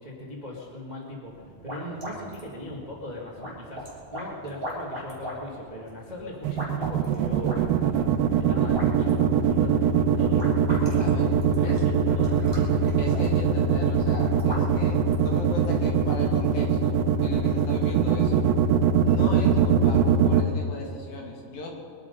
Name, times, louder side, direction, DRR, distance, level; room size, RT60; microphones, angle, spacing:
voice 1, 0.0-8.1 8.4-10.5 10.9-12.7, left 1 dB, 25° right, -2 dB, 1.0 m, -39 dB
sound 1, 1.2-15.8, equal, 5° right, 3.2 m, -40 dB
sound 2, 6.4-20.4, right 8 dB, 85° right, 2.5 m, -21 dB
voice 2, 11.0-11.3 11.6-11.8 13.0-17.0 17.2-18.4 19.0-21.7, left 2 dB, 75° left, 0 dB, 4.0 m, -37 dB
23.0 x 11.0 x 5.4 m, 2.3 s
omnidirectional pair, 4.2 m